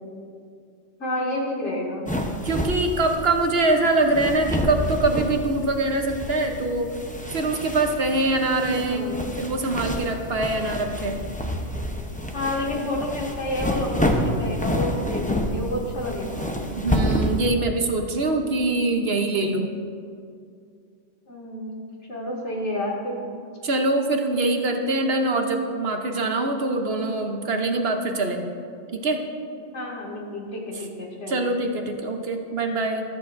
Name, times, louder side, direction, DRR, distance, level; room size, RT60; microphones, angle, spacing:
voice 1, 1.0-2.1 8.8-9.2 12.3-16.5 21.3-21.8 22.1-23.2 29.7-31.4, left 1 dB, 70° left, -3 dB, 2.2 m, -30 dB
sound 1, 2.1-17.5, equal, 10° left, 0.6 m, -29 dB
voice 2, 2.4-6.9 7.3-11.2 16.8-19.7 23.6-28.5 28.9-29.2 31.3-33.0, right 2 dB, 55° right, 4 dB, 1.1 m, -24 dB
14.0 x 13.5 x 2.6 m, 2.3 s
omnidirectional pair, 1.3 m